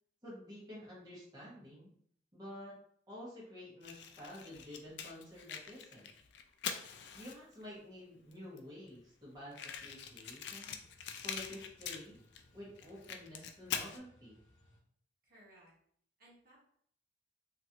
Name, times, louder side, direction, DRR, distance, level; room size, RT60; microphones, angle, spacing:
voice 1, 0.2-1.9 2.3-2.7 3.1-6.1 7.1-10.8 11.2-12.2 12.5-14.4, left 1 dB, 20° right, -7 dB, 1.1 m, -50 dB
Fire, 3.8-7.6 8.3-8.4 8.6-8.7 8.9-9.0 9.5-12.4 12.8-14.0, left 7 dB, 60° left, 0.3 m, -43 dB
sound 1, 9.7-14.8, equal, 85° left, 0.7 m, -66 dB
voice 2, 15.2-15.7 16.2-16.6, right 1 dB, 50° right, -6 dB, 1.1 m, -61 dB
2.9 x 2.5 x 2.7 m, 0.64 s
head